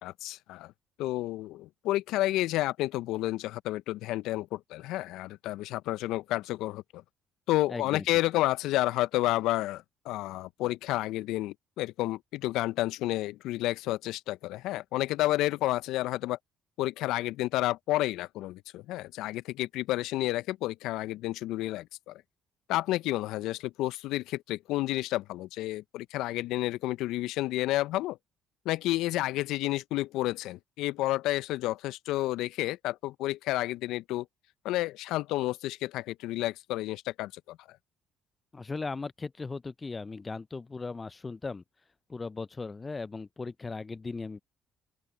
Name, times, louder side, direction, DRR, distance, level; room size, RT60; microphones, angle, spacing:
voice 1, 0.0-0.7 1.0-7.0 7.5-16.4 16.8-22.2 22.7-28.2 28.6-34.3 34.6-37.6, left 17 dB, 70° left, 1.0 m, -30 dB
voice 2, 7.7-8.0 38.5-41.6 42.1-44.4, left 4 dB, 30° left, 1.0 m, -37 dB
open air
hypercardioid pair, 50°, 0 cm